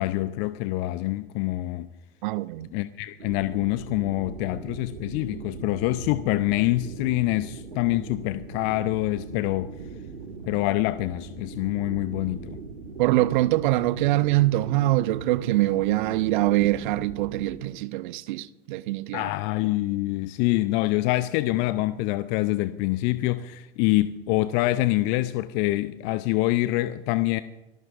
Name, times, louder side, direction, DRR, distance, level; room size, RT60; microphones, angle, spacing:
voice 1, 0.0-1.9 2.7-9.7 10.5-12.6 19.1-27.4, left 18 dB, 35° left, 0.5 m, -25 dB
voice 2, 2.2-2.7 13.0-19.3, right 16 dB, 50° right, 0.7 m, -24 dB
sound 1, 3.2-17.6, right 4 dB, 80° right, 2.1 m, -40 dB
25.5 x 19.5 x 2.5 m
figure-of-eight pair, 90°, 32 cm